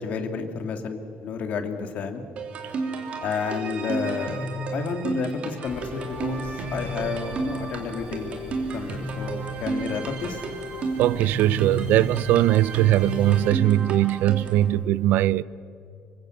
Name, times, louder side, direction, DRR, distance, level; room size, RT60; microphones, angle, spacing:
voice 1, 0.0-2.2 3.2-8.4 8.7-10.4, left 5 dB, 45° left, 2.1 m, -31 dB
sound 1, 2.4-14.7, right 3 dB, 40° right, 3.4 m, -32 dB
sound 2, 5.6-13.5, left 4 dB, 65° left, 5.1 m, -44 dB
voice 2, 11.0-15.4, right 14 dB, 65° right, 0.5 m, -20 dB
26.5 x 24.5 x 7.7 m
cardioid pair, 180°, 3 cm